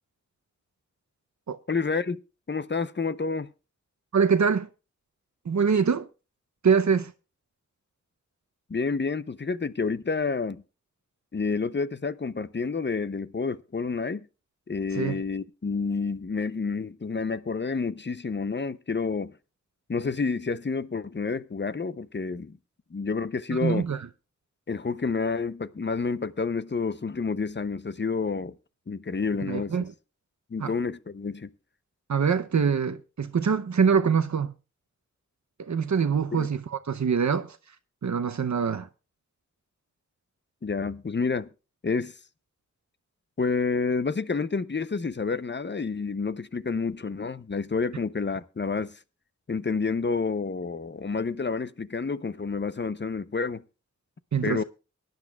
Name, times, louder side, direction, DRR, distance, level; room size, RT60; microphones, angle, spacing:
voice 1, 1.7-2.2 2.5-3.5 8.7-10.6 11.3-14.3 14.7-19.3 19.9-22.6 22.9-23.8 24.7-28.5 28.9-29.8 30.5-31.5 36.3-36.5 40.6-41.5 41.8-42.1 43.4-49.0 49.5-53.6 54.4-54.6, left 4 dB, 40° left, 0.6 m, -29 dB
voice 2, 4.1-4.7 5.5-6.1 6.6-7.1 14.9-15.2 23.5-24.0 29.5-29.9 30.6-30.7 32.1-34.5 35.6-37.6 38.0-38.9 54.3-54.6, right 6 dB, 75° right, 0.7 m, -24 dB
23.5 x 10.5 x 2.3 m
wide cardioid pair, 70°, 29 cm